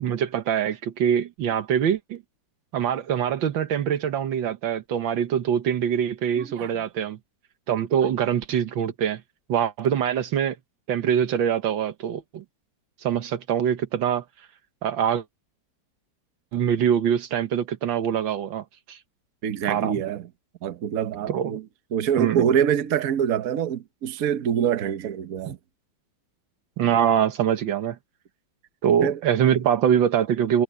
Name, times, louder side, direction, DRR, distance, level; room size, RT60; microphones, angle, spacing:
voice 1, 0.0-2.2 2.7-7.2 7.7-9.2 9.5-10.6 10.9-12.4 13.0-14.2 14.8-15.2 16.5-19.0 19.7-20.0 21.3-21.5 22.2-22.4 25.5-25.6 26.8-28.0 28.8-30.6, right 9 dB, 85° right, 1.9 m, -24 dB
voice 2, 6.4-6.7 8.0-8.1 19.4-20.3 20.6-21.6 21.9-25.6 29.0-29.2, right 9 dB, 55° right, 1.3 m, -25 dB
omnidirectional pair, 2.1 m